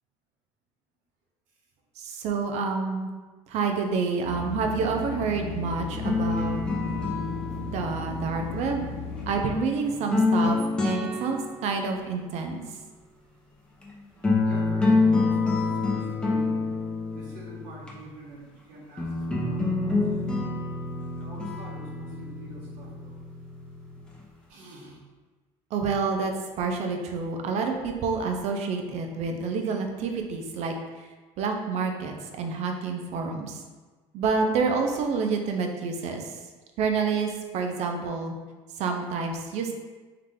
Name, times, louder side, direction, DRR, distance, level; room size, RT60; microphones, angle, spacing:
voice 1, 2.0-3.1 3.5-6.6 7.6-8.9 9.3-12.6 25.7-30.7 31.4-33.6 34.1-36.3 36.8-38.3 38.8-39.7, right 4 dB, 60° right, 3 dB, 0.7 m, -28 dB
sound 1, 4.2-9.5, left 4 dB, 55° left, 0.6 m, -36 dB
sound 2, 5.9-9.2 9.9-12.0 13.8-13.9 14.2-17.9 19.0-24.0, left 3 dB, 10° left, 0.9 m, -27 dB
voice 2, 14.4-16.7 17.1-20.5 21.2-23.2 24.5-25.0, right 2 dB, 75° right, -3 dB, 1.2 m, -45 dB
3.8 x 3.2 x 3.6 m, 1.3 s
cardioid pair, 110°, 13 cm